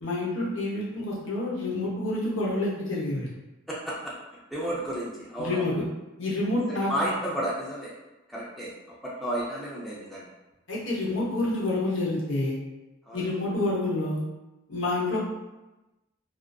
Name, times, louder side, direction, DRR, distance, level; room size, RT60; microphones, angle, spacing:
voice 1, 0.0-3.3 5.4-5.8 6.2-6.9 10.7-12.6 13.1-14.2 14.7-15.2, left 2 dB, 65° left, -5 dB, 0.8 m, -28 dB
voice 2, 3.7-4.1 4.5-5.7 6.5-6.6 6.9-7.9 8.3-8.7 9.0-10.3 13.1-13.3, right 1 dB, ahead, -7 dB, 0.4 m, -32 dB
2.5 x 2.4 x 2.2 m, 1.0 s
head